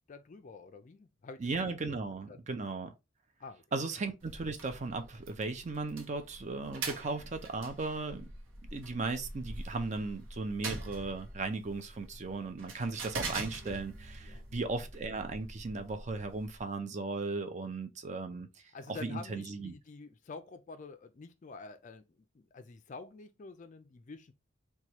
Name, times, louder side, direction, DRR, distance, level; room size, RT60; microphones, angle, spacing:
voice 1, 0.1-1.5 2.3-2.4 3.4-3.6 6.9-7.0 13.6-13.8 14.2-14.7 18.7-24.3, left 4 dB, 35° left, 0.4 m, -48 dB
voice 2, 1.4-2.9 3.7-8.3 8.6-18.5 18.9-19.7, right 3 dB, 35° right, 0.4 m, -36 dB
sound 1, 4.2-16.6, right 3 dB, 70° right, 0.8 m, -44 dB
3.0 x 2.3 x 4.2 m
head